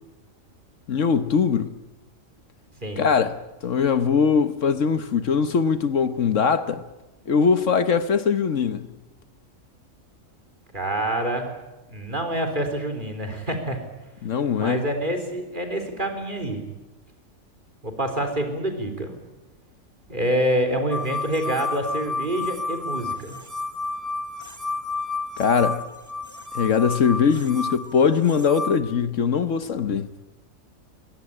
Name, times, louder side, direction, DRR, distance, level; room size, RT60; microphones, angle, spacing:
voice 1, 0.9-1.7 3.0-6.8 7.3-8.9 14.2-14.8 25.4-25.8 26.5-30.1, left 6 dB, 65° left, 1.3 m, -21 dB
voice 2, 10.7-11.6 11.9-13.8 14.6-16.6 17.8-19.2 20.1-23.4, right 1 dB, 35° right, 4.0 m, -26 dB
sound 1, 20.9-28.8, left 3 dB, 15° right, 1.5 m, -31 dB
23.0 x 18.0 x 9.9 m
omnidirectional pair, 1.4 m